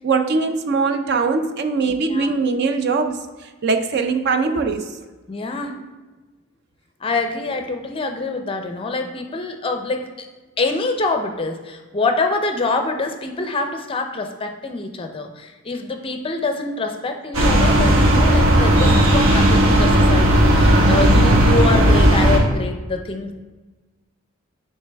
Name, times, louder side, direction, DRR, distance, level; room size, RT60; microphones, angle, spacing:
voice 1, 0.0-4.9, right 4 dB, 50° right, 8 dB, 0.4 m, -21 dB
voice 2, 5.3-5.7 7.0-10.3 10.6-23.3, left 3 dB, 25° left, 5 dB, 0.5 m, -25 dB
sound 1, 17.3-22.4, right 1 dB, 85° right, 1.2 m, -14 dB
9.9 x 3.3 x 3.4 m, 1.3 s
head